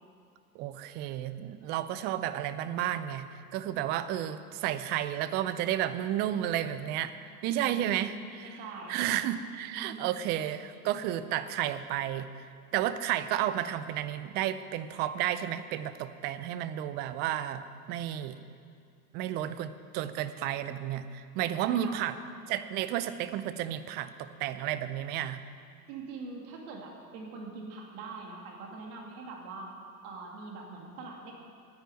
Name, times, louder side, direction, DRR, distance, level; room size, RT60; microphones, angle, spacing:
voice 1, 0.5-7.2 7.4-8.6 8.9-12.5 12.7-18.4 19.1-22.1 22.5-25.4, right 11 dB, 25° right, 13 dB, 0.4 m, -32 dB
voice 2, 7.5-9.2 9.7-10.1 21.6-22.0 25.9-29.7 30.0-31.3, right 3 dB, 45° right, 0 dB, 2.6 m, -43 dB
10.0 x 9.7 x 9.2 m, 2.3 s
hypercardioid pair, 100°, 48 cm